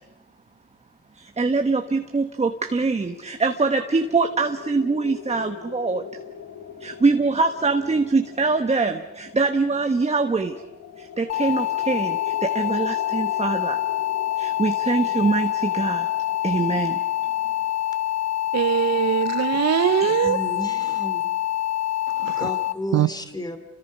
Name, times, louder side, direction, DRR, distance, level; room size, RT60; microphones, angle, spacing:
voice 1, 1.1-6.0 6.8-10.6 11.0-13.8 14.4-16.1 16.4-17.0 20.0-20.1, right 3 dB, 20° right, 1.3 m, -23 dB
sound 1, 2.8-19.7, left 8 dB, 75° left, 1.4 m, -41 dB
sound 2, 11.3-22.7, left 13 dB, 60° left, 1.0 m, -26 dB
voice 2, 18.5-20.4 22.2-22.5 22.9-23.1, right 10 dB, 60° right, 0.8 m, -22 dB
voice 3, 20.2-21.3 22.3-23.6, left 1 dB, 15° left, 2.7 m, -32 dB
28.5 x 25.0 x 5.4 m
cardioid pair, 90°, 30 cm